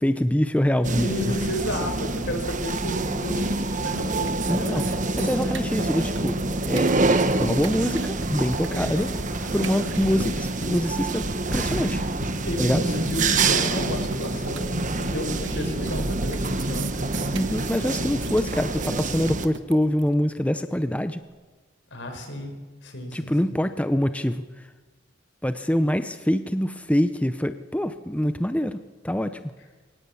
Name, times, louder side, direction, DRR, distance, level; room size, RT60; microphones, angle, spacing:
voice 1, 0.0-1.3 4.5-4.8 5.2-6.4 6.7-9.1 9.5-11.2 11.5-12.0 12.6-12.8 17.3-21.2 23.1-24.4 25.4-28.8 29.0-29.4, equal, 5° left, 10 dB, 0.7 m, -25 dB
sound 1, 0.8-19.5, right 2 dB, 40° right, 1.4 m, -26 dB
voice 2, 1.0-5.6 8.7-10.3 12.4-17.2 21.9-22.5 22.8-23.5, left 1 dB, 70° left, 5 dB, 5.1 m, -33 dB
sound 2, 3.7-3.8 4.1-20.1, right 5 dB, 70° right, 1.5 m, -39 dB
22.5 x 19.0 x 8.6 m, 1.3 s
head